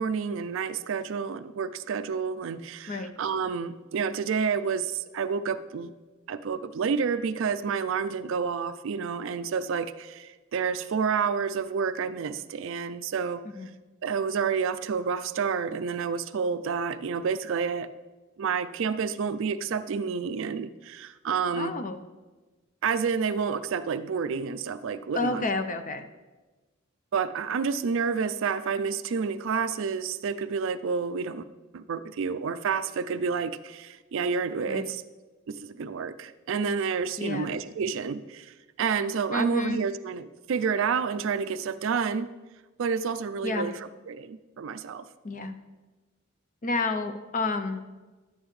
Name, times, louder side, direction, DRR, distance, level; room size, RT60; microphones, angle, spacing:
voice 1, 0.0-5.9 6.3-13.4 14.0-17.9 18.4-21.7 22.8-25.4 27.1-31.5 31.7-35.0 35.5-42.3 42.8-43.7 44.1-45.1, right 6 dB, 65° right, 13 dB, 0.4 m, -29 dB
voice 2, 21.6-22.0 25.1-26.1 34.7-34.9 37.2-37.5 39.3-39.8 43.4-43.7 45.2-45.5 46.6-47.8, left 2 dB, 40° left, 9 dB, 0.6 m, -30 dB
11.0 x 8.8 x 3.2 m, 1.2 s
head